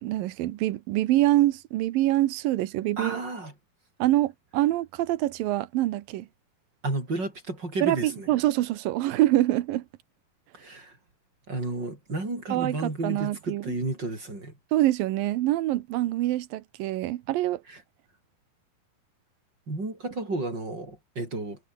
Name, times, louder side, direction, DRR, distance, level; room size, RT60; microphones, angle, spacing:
voice 1, 0.0-3.2 4.0-6.3 7.8-9.9 12.5-13.6 14.7-17.6, right 15 dB, 85° right, 2.8 m, -25 dB
voice 2, 3.0-3.5 6.8-8.3 10.5-11.0 11.5-14.5 17.7-17.8 19.7-21.6, right 2 dB, 30° right, 8.7 m, -32 dB
omnidirectional pair, 4.0 m